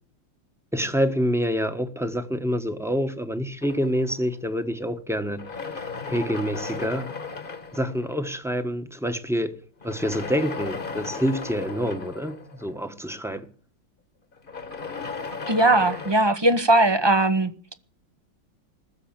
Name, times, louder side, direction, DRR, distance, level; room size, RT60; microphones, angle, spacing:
voice 1, 0.7-5.4 5.7-7.1 7.7-9.6 9.8-13.4, equal, ahead, 1.0 m, -27 dB
sound 1, 3.6-4.8 5.3-8.5 9.8-13.2 14.3-16.2, left 4 dB, 30° left, 1.3 m, -36 dB
voice 2, 15.5-17.7, right 2 dB, 25° right, 0.5 m, -20 dB
20.5 x 7.2 x 8.9 m
omnidirectional pair, 2.0 m